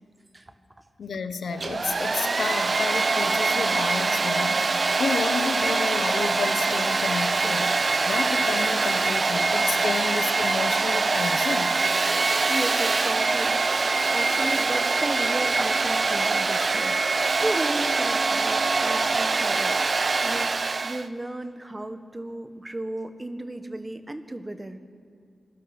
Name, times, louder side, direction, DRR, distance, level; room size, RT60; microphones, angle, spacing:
voice 1, 0.3-0.8 12.5-24.8, right 1 dB, 25° right, 9 dB, 1.4 m, -35 dB
voice 2, 1.0-11.8, left 5 dB, 90° left, 10 dB, 1.0 m, -31 dB
Domestic sounds home sounds, 1.5-21.1, right 3 dB, 50° right, 0.7 m, -24 dB
25.5 x 20.5 x 6.1 m, 2.2 s
cardioid pair, 70°, 0 cm